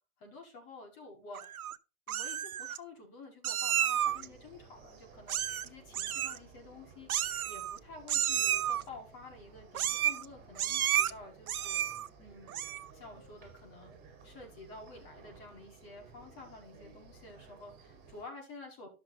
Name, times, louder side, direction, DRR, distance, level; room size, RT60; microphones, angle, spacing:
voice 1, 0.2-1.5 2.1-11.9 12.2-12.6 12.9-14.0 14.2-18.9, left 3 dB, 30° left, 1 dB, 4.8 m, -50 dB
Meow, 1.3-1.8 2.1-2.8 3.4-4.3 5.3-5.7 5.9-6.4 7.1-7.8 8.1-8.8 9.7-10.3 10.6-11.1 11.5-12.1 12.5-12.9, right 10 dB, 90° right, 0.9 m, -31 dB
sound 1, 4.0-18.2, right 4 dB, 20° right, 4.7 m, -56 dB
12.5 x 6.4 x 4.1 m, 0.32 s
hypercardioid pair, 145°, 42 cm